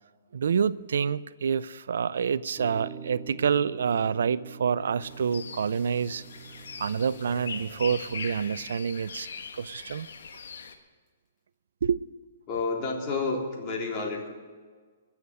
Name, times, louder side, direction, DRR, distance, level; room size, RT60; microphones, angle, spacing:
voice 1, 0.3-6.2 6.8-10.1 11.8-12.0, right 7 dB, 70° right, 18 dB, 0.4 m, -27 dB
sound 1, 2.6-9.0, right 6 dB, 15° right, 2.3 m, -45 dB
sound 2, 5.0-10.7, left 5 dB, 75° left, 1.4 m, -41 dB
sound 3, 5.7-10.7 11.1-11.2, equal, 10° left, 5.7 m, -54 dB
voice 2, 12.5-14.3, left 3 dB, 35° left, -1 dB, 3.6 m, -30 dB
21.5 x 7.2 x 6.5 m, 1.5 s
hypercardioid pair, 130°, 0 cm